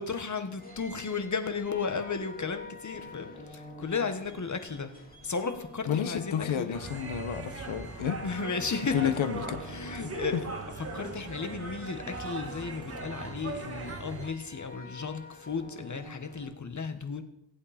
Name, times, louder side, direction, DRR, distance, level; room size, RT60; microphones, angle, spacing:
voice 1, 0.0-4.9 5.2-6.8 8.2-9.1 9.6-10.4 10.8-17.2, left 5 dB, 40° left, 8 dB, 1.5 m, -34 dB
sound 1, 0.6-16.5, left 3 dB, 20° left, 3.7 m, -48 dB
voice 2, 5.9-8.2 8.9-9.6 10.3-10.4, left 9 dB, 80° left, 11 dB, 1.1 m, -30 dB
sound 2, 6.7-14.3, right 3 dB, 30° right, 1.8 m, -39 dB
23.0 x 8.5 x 4.4 m, 0.76 s
wide cardioid pair, 120°, 47 cm